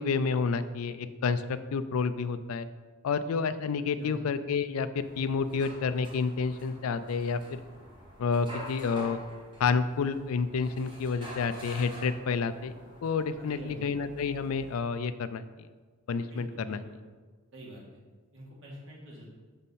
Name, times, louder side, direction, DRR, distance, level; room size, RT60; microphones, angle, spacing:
voice 1, 0.0-2.7 3.0-7.6 8.2-9.2 9.6-12.7 13.0-15.7 16.1-16.8, left 5 dB, 75° left, 13 dB, 0.4 m, -29 dB
sound 1, 5.0-14.8, equal, 20° right, 1.5 m, -47 dB
voice 2, 13.4-13.9 16.3-17.0 17.5-18.0 18.3-19.3, equal, 65° right, -4 dB, 2.1 m, -46 dB
6.2 x 4.1 x 5.5 m, 1.4 s
head